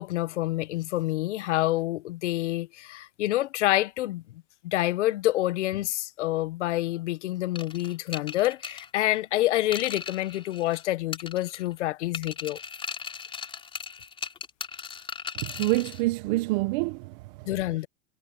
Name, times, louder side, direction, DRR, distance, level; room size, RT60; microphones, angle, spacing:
voice 1, 0.0-4.2 4.6-12.6 17.5-17.9, left 16 dB, 55° left, 1.4 m, -27 dB
sound 1, 7.6-10.8 11.1-11.8 12.1-16.0, left 6 dB, 10° left, 4.7 m, -38 dB
voice 2, 15.3-17.5, right 21 dB, 35° right, 1.1 m, -27 dB
hypercardioid pair, 150°, 41 cm